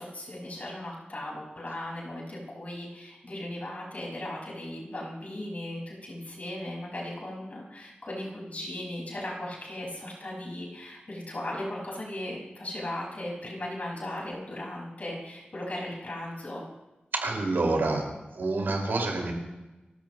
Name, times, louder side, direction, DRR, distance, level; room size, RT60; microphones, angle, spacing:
voice 1, 0.0-16.6, left 1 dB, 45° left, -3 dB, 5.6 m, -37 dB
voice 2, 17.2-18.0 18.3-19.3, right 2 dB, 90° right, 0 dB, 5.1 m, -27 dB
29.0 x 14.0 x 3.1 m, 1.0 s
wide cardioid pair, 100°, 3 cm